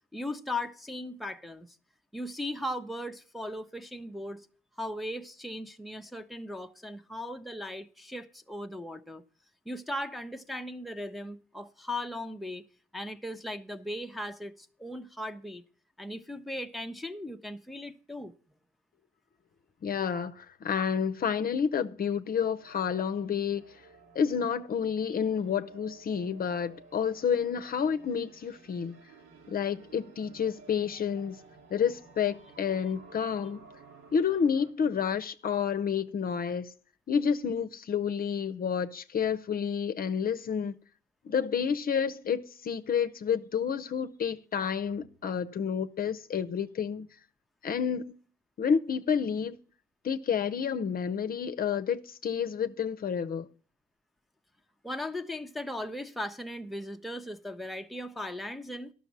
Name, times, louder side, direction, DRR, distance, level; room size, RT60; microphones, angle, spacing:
voice 1, 0.1-1.7 2.1-4.5 4.8-9.2 9.7-12.6 12.9-15.6 16.0-18.3 54.8-58.9, left 1 dB, ahead, 0.7 m, -38 dB
voice 2, 19.8-23.6 24.1-29.0 29.5-31.4 31.7-33.6 34.1-36.7 37.1-40.7 41.2-47.1 47.6-48.2 48.6-49.6 50.0-53.5, left 7 dB, 45° left, 0.7 m, -29 dB
sound 1, 22.5-34.7, right 3 dB, 80° right, 2.1 m, -54 dB
11.5 x 6.2 x 7.3 m
cardioid pair, 90°, 20 cm